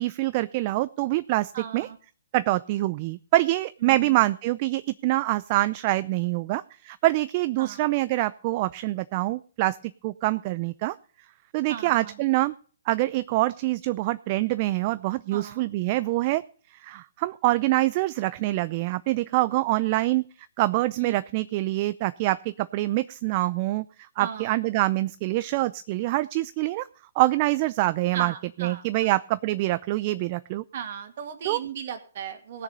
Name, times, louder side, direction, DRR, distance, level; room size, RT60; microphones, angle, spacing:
voice 1, 0.0-1.9 2.3-9.8 10.0-10.9 11.5-12.5 12.9-16.4 16.7-20.3 20.6-26.9 27.2-28.3 28.6-30.6 31.5-31.6, right 18 dB, 40° right, 15 dB, 0.5 m, -25 dB
voice 2, 1.5-2.0 3.8-4.2 7.6-7.8 11.7-12.2 15.3-15.7 21.0-21.1 24.2-24.5 28.1-29.1 30.7-32.6, right 8 dB, 55° right, 7 dB, 2.3 m, -36 dB
18.5 x 6.8 x 5.3 m, 0.42 s
hypercardioid pair, 130°, 0 cm